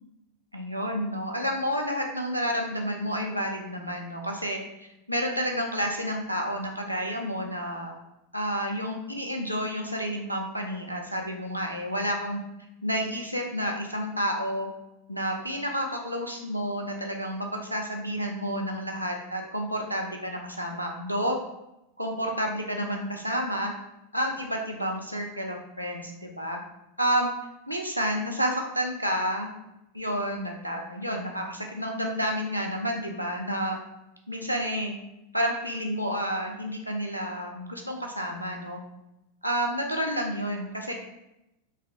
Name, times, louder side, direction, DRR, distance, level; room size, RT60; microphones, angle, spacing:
voice 1, 0.5-7.9 8.3-12.4 12.8-14.7 15.1-21.4 22.0-23.7 24.1-26.6 27.0-27.3 27.7-29.5 29.9-33.8 34.3-35.0 35.3-38.8 39.4-40.9, equal, 90° right, 1 dB, 0.6 m, -30 dB
3.2 x 2.9 x 3.6 m, 0.90 s
figure-of-eight pair, 90°, 0 cm